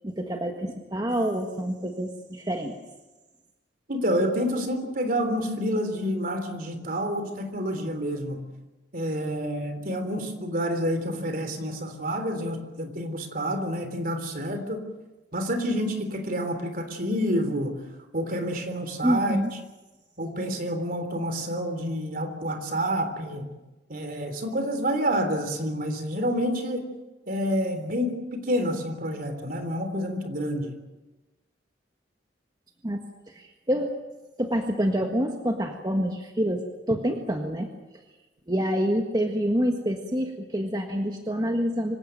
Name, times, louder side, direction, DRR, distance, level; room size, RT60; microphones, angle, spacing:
voice 1, 0.0-2.8 19.0-19.5 32.8-33.0 33.3-33.9 34.4-37.7 38.5-42.0, equal, 25° right, 3 dB, 1.6 m, -27 dB
voice 2, 3.9-8.4 8.9-14.8 15.3-17.7 18.1-19.4 20.2-23.5 23.9-26.8 27.3-30.7, equal, 50° right, 7 dB, 3.6 m, -28 dB
25.5 x 16.5 x 9.1 m, 1.1 s
head